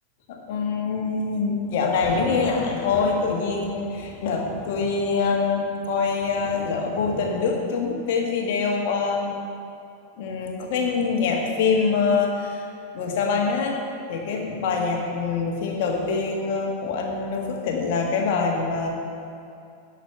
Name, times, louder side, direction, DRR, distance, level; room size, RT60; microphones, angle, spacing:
voice 1, 0.5-9.4 10.2-12.7 12.9-13.8 14.1-18.9, left 4 dB, 50° left, 0 dB, 1.6 m, -24 dB
sound 1, 1.6-7.9, equal, 10° right, 1.8 m, -40 dB
12.0 x 5.0 x 7.7 m, 2.5 s
figure-of-eight pair, 90°, 0 cm